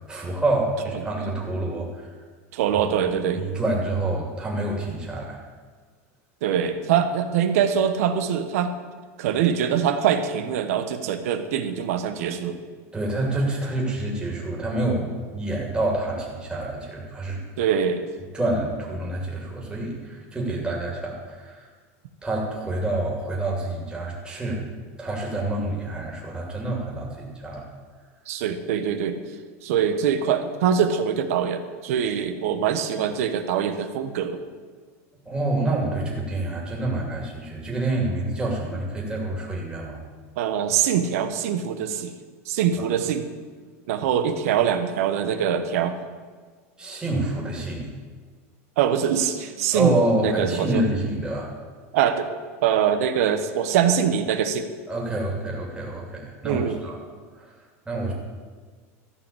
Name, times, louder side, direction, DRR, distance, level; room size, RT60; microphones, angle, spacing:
voice 1, 0.1-2.1 3.3-5.4 12.9-17.4 18.3-21.7 22.2-24.7 25.0-27.7 35.3-40.0 42.8-42.9 46.8-47.9 49.7-51.5 54.9-57.0 57.3-57.5 57.9-58.1, right 2 dB, 10° right, -2 dB, 2.6 m, -27 dB
voice 2, 2.5-3.4 6.4-8.7 9.2-12.6 17.6-18.1 28.3-29.2 29.6-34.4 40.4-42.1 42.5-43.3 43.9-45.9 48.8-50.8 51.9-52.3 52.6-54.7 56.4-56.8, right 8 dB, 80° right, 9 dB, 1.1 m, -23 dB
14.0 x 5.6 x 8.4 m, 1.5 s
supercardioid pair, 140°, 8 cm